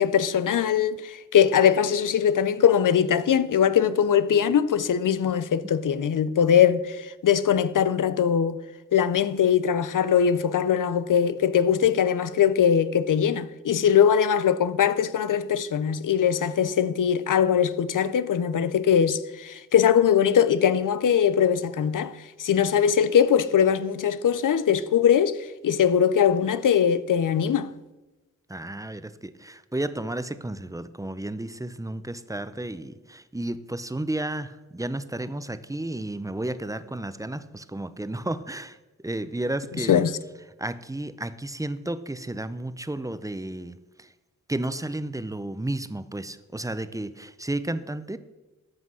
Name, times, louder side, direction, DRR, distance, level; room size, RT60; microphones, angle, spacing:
voice 1, 0.0-8.6 8.9-27.7 39.8-40.1, left 8 dB, 90° left, 0.6 m, -21 dB
voice 2, 28.5-38.8 39.0-40.0 40.6-44.1 44.5-48.2, right 1 dB, 10° right, 0.5 m, -32 dB
12.5 x 6.0 x 6.2 m
wide cardioid pair, 80°, 31 cm